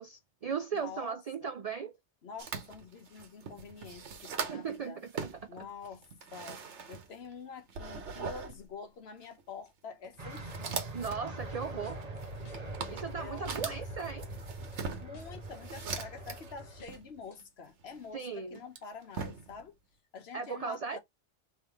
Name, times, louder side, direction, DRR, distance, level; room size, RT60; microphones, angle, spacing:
voice 1, 0.0-1.9 4.5-5.3 10.9-12.0 12.9-14.3 18.1-18.6 20.3-21.0, right 6 dB, 65° right, 0.3 m, -37 dB
voice 2, 0.7-1.2 2.2-5.0 5.5-6.1 6.3-6.6 6.9-10.8 13.2-14.1 15.0-19.7 20.1-21.0, left 5 dB, 65° left, 1.1 m, -47 dB
sound 1, 2.4-4.8 5.1-7.3 7.7-8.6 9.2-9.4 10.0-16.6 16.9-18.1 18.6-19.7, right 5 dB, 85° right, 1.2 m, -41 dB
sound 2, 10.2-16.8, right 2 dB, 35° right, 1.0 m, -43 dB
sound 3, 11.0-13.6 13.9-16.9 17.2-17.4, left 4 dB, 40° left, 0.8 m, -55 dB
3.6 x 3.1 x 4.5 m
omnidirectional pair, 1.2 m